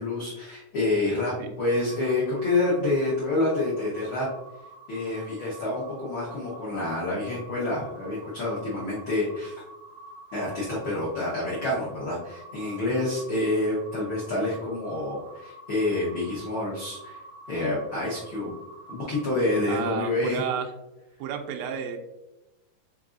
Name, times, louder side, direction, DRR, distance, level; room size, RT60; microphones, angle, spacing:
voice 1, 0.0-4.3 4.9-9.5 10.3-17.2 17.5-18.5 18.9-20.4, left 2 dB, 80° left, -5 dB, 1.1 m, -28 dB
sound 1, 1.6-19.9, right 2 dB, 50° right, 2.1 m, -47 dB
voice 2, 19.7-20.7 21.2-22.0, right 8 dB, 90° right, 4 dB, 2.2 m, -32 dB
5.2 x 3.9 x 2.4 m, 0.98 s
omnidirectional pair, 3.7 m